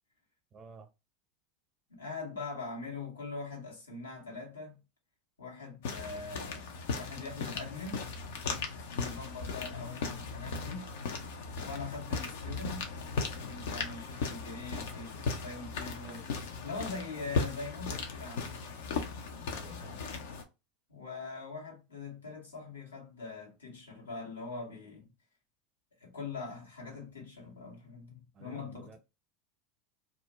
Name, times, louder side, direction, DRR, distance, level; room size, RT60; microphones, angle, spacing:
voice 1, 0.5-0.9 16.0-16.3 19.5-20.0 28.3-29.0, right 4 dB, 35° right, 0.7 m, -52 dB
voice 2, 1.9-4.8 5.4-8.1 8.9-10.9 11.6-16.3 16.6-18.6 20.9-25.1 26.0-29.0, left 4 dB, 90° left, 1.1 m, -43 dB
sound 1, 5.8-20.4, left 4 dB, 70° left, 0.5 m, -37 dB
2.3 x 2.1 x 3.0 m
hypercardioid pair, 85°, 0 cm